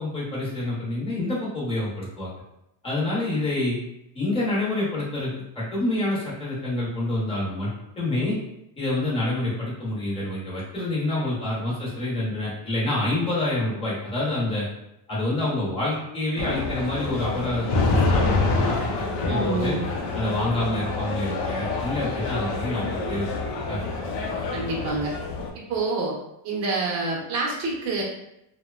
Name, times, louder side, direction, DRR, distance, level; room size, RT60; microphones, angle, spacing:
voice 1, 0.0-2.3 2.8-3.8 4.1-7.7 8.0-8.4 8.8-14.7 15.1-17.7 17.9-19.8 20.1-23.2 23.7-23.8, left 2 dB, 10° left, -8 dB, 0.7 m, -27 dB
sound 1, 16.4-25.5, left 3 dB, 75° left, 0.6 m, -26 dB
voice 2, 19.2-19.9 24.5-25.1 25.5-26.2 26.4-28.0, right 3 dB, 35° right, -3 dB, 0.7 m, -27 dB
2.9 x 2.1 x 2.3 m, 0.84 s
cardioid pair, 165°, 45 cm